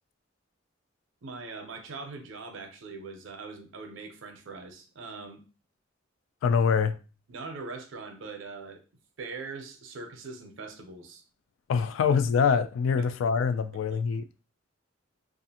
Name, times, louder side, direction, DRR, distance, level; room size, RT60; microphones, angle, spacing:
voice 1, 1.2-5.4 7.3-8.8 9.2-11.2 12.0-12.1 13.0-13.2, right 4 dB, 70° right, 0.6 m, -41 dB
voice 2, 6.4-7.0 11.7-14.3, left 6 dB, 75° left, 0.3 m, -24 dB
2.5 x 2.4 x 2.7 m
head